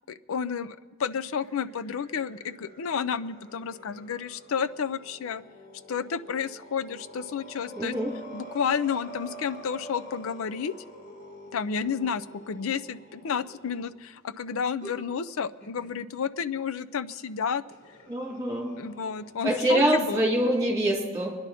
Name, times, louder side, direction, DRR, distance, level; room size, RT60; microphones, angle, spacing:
voice 1, 0.1-5.4 5.9-7.9 8.3-10.8 11.5-17.6 18.8-20.2, left 6 dB, 80° left, 14 dB, 0.5 m, -31 dB
sound 1, 1.1-13.9 14.8-15.0 15.6-15.9 17.7-19.5, equal, 50° left, 3.8 m, -47 dB
voice 2, 7.7-8.1 18.1-18.7 19.4-21.3, right 1 dB, 15° right, -2 dB, 2.9 m, -25 dB
24.5 x 10.5 x 4.2 m, 1.5 s
head